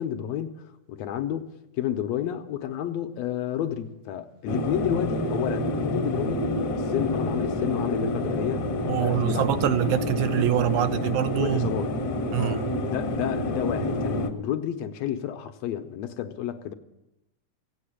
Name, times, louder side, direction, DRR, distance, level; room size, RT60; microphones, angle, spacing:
voice 1, 0.0-9.7 11.4-11.9 12.4-16.7, left 10 dB, 75° left, 1.8 m, -31 dB
sound 1, 4.5-14.3, left 1 dB, 50° left, 1.2 m, -28 dB
voice 2, 8.8-11.7 12.3-12.7, right 11 dB, 85° right, 2.2 m, -25 dB
16.0 x 8.7 x 10.0 m
omnidirectional pair, 3.4 m